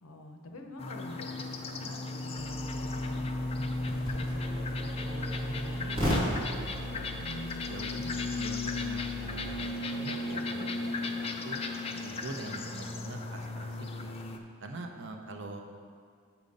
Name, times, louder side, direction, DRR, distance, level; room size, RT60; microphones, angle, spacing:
voice 1, 0.0-6.4, left 1 dB, 80° left, 4 dB, 0.7 m, -46 dB
sound 1, 0.8-14.4, left 2 dB, 30° left, 0.4 m, -35 dB
sound 2, 2.3-9.6, equal, 25° right, 2.1 m, -37 dB
sound 3, 4.1-13.9, left 1 dB, ahead, 1.6 m, -49 dB
voice 2, 7.1-11.6 12.0-14.1 14.6-15.6, right 2 dB, 60° right, 3 dB, 0.7 m, -44 dB
7.1 x 5.1 x 5.3 m, 2.2 s
head